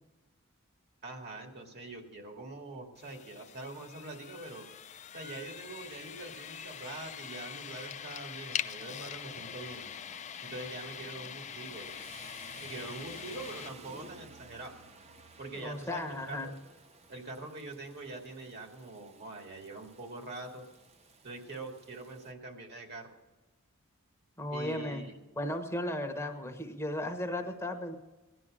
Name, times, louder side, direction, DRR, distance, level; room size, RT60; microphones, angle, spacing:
voice 1, 1.0-4.7 5.1-9.9 10.4-12.0 12.6-14.7 15.4-16.5 17.1-20.7 21.2-23.1 24.5-25.2, right 2 dB, 50° right, 3 dB, 2.3 m, -44 dB
sound 1, 3.0-13.7, left 9 dB, 35° left, 0.4 m, -43 dB
Rain, 5.3-22.3, right 3 dB, 30° right, 0.8 m, -56 dB
voice 2, 15.5-16.5 24.4-25.0 25.4-28.0, left 1 dB, 10° left, 3 dB, 1.1 m, -35 dB
17.0 x 11.0 x 6.3 m, 1.1 s
head